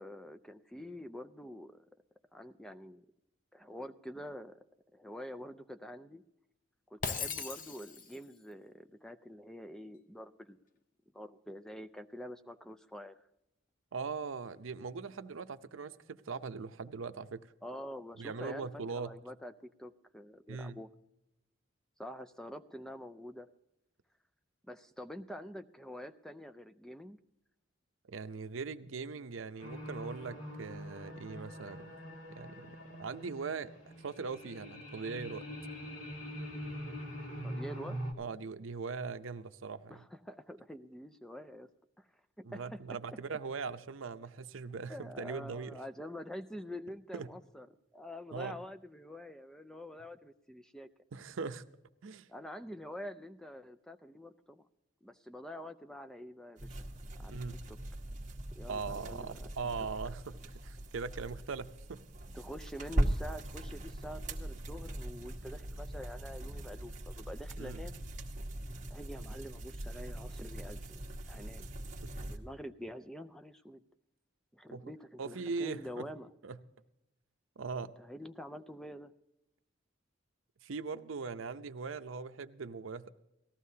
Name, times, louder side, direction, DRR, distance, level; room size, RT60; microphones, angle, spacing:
voice 1, 0.0-1.9 2.3-3.0 3.5-4.6 4.9-6.2 6.9-10.6 11.1-13.2 17.6-18.7 18.9-20.9 22.0-23.5 24.7-27.2 37.4-38.0 39.9-41.7 42.0-42.1 42.4-43.0 44.9-47.7 47.9-50.9 52.3-54.6 55.0-56.8 57.2-57.4 57.7-57.8 58.6-59.5 62.3-68.0 68.9-71.7 72.2-73.8 74.5-76.3 78.0-79.1, equal, 5° left, 10 dB, 0.3 m, -46 dB
Shatter, 7.0-8.2, left 5 dB, 40° left, 0.7 m, -38 dB
voice 2, 13.9-17.5 18.2-19.1 20.5-20.8 28.1-31.9 32.3-33.7 34.0-35.5 38.2-40.0 42.4-45.8 47.1-47.3 48.3-48.6 51.1-51.6 52.0-52.3 57.3-57.6 58.7-62.0 67.6-67.8 72.0-72.1 74.7-74.9 75.2-76.1 76.4-76.6 77.6-77.9 80.6-83.1, right 4 dB, 75° right, 11 dB, 0.6 m, -40 dB
sound 1, 29.6-38.1, equal, 85° left, 2.0 m, -44 dB
sound 2, 56.6-72.4, right 1 dB, 40° right, 1.1 m, -40 dB
18.5 x 14.5 x 2.7 m, 0.88 s
head